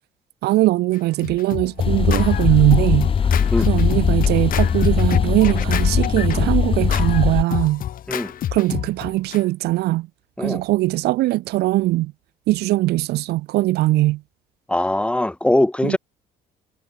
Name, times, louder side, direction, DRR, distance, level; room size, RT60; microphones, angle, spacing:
voice 1, 0.4-3.1 3.6-7.8 8.5-10.1 10.4-12.1 12.5-14.2 15.8-16.0, right 18 dB, 75° right, 0.6 m, -20 dB
Scratching (performance technique), 0.9-9.4, left 11 dB, 55° left, 1.3 m, -29 dB
sound 1, 1.8-7.4, left 6 dB, 30° left, 1.0 m, -20 dB
voice 2, 14.7-16.0, left 1 dB, 5° left, 1.3 m, -21 dB
cardioid pair, 110°, 17 cm